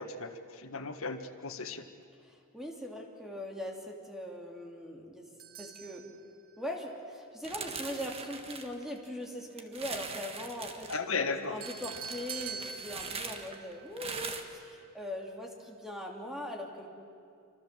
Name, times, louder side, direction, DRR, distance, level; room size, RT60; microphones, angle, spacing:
voice 1, 0.0-1.8 10.9-11.6, left 4 dB, 80° left, 7 dB, 1.6 m, -35 dB
voice 2, 2.2-5.3 5.6-6.1 6.6-16.9, left 1 dB, ahead, 1 dB, 2.9 m, -41 dB
sound 1, 5.4-6.7 11.6-14.9, right 6 dB, 45° right, 0.9 m, -45 dB
sound 2, 7.4-9.2 9.6-11.0 11.6-14.4, right 4 dB, 30° right, 1.6 m, -41 dB
27.5 x 25.0 x 7.6 m, 2.4 s
head